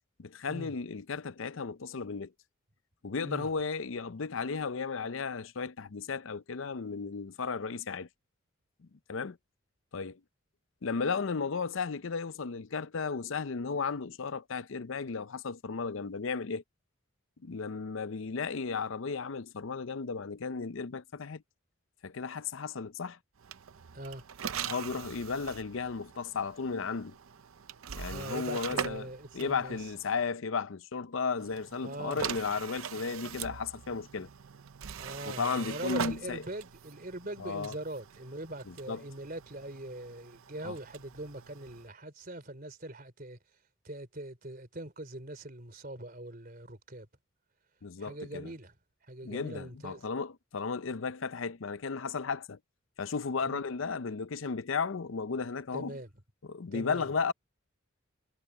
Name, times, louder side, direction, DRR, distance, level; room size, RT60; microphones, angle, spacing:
voice 1, 0.2-2.3 3.0-8.1 9.1-9.4 9.9-10.2 10.8-16.6 17.4-21.4 22.0-23.2 24.6-27.1 27.9-34.3 35.3-36.4 37.4-37.8 38.7-39.0 40.6-40.8 47.8-48.5 49.2-52.6 53.0-56.0 56.4-57.3, left 5 dB, 70° left, 0.6 m, -34 dB
sound 1, 23.4-30.3 31.4-41.9, right 7 dB, 85° right, 0.6 m, -42 dB
voice 2, 28.1-29.8 31.8-32.3 35.0-43.4 43.8-47.1 48.0-48.7 49.0-50.0 53.5-53.6 55.7-56.1 56.7-57.1, right 1 dB, 45° right, 3.6 m, -42 dB
head